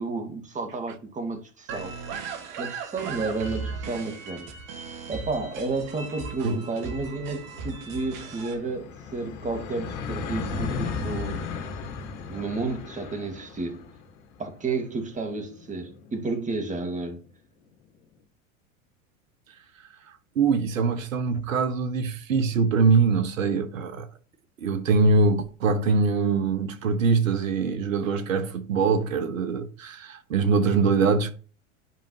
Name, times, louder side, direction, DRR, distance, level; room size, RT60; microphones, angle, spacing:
voice 1, 0.0-1.9 2.6-4.5 5.1-11.5 12.3-13.9 14.4-17.2, right 3 dB, 20° right, 2.0 m, -31 dB
sound 1, 1.7-8.5, right 5 dB, 55° right, 2.1 m, -37 dB
sound 2, 6.1-17.0, left 5 dB, 60° left, 1.9 m, -37 dB
voice 2, 20.3-24.1 24.6-31.3, right 4 dB, 85° right, 1.4 m, -23 dB
11.0 x 5.2 x 3.0 m
hypercardioid pair, 100°, 39 cm